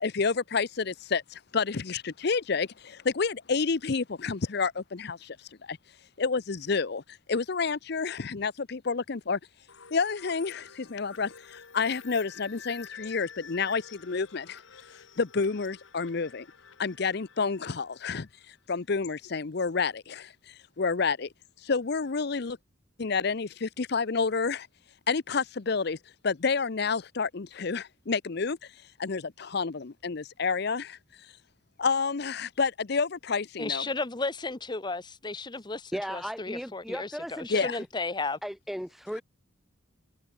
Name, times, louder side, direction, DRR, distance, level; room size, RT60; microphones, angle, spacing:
voice 1, 0.0-5.4 5.7-5.8 6.2-7.0 7.3-9.4 9.9-14.6 15.2-16.5 16.8-18.3 18.7-21.3 21.6-22.6 23.0-24.7 25.1-26.0 26.2-28.6 29.0-31.0 31.8-33.9 37.5-37.8, left 4 dB, 55° left, 0.7 m, -29 dB
sound 1, 9.7-18.3, left 6 dB, 75° left, 1.7 m, -48 dB
voice 2, 33.6-38.4, left 3 dB, 20° left, 0.8 m, -34 dB
voice 3, 35.9-37.9 38.4-39.2, equal, ahead, 1.0 m, -36 dB
head